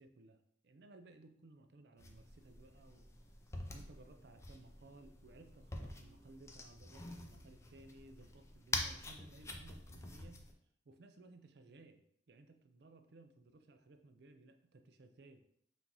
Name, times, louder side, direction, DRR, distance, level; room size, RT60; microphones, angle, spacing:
voice 1, 0.0-3.2 3.7-10.4 10.9-12.0 12.3-15.4, right 2 dB, 60° right, 7 dB, 0.5 m, -60 dB
sound 1, 2.0-10.5, left 2 dB, 15° left, 0.4 m, -46 dB
5.5 x 2.6 x 3.0 m, 0.69 s
head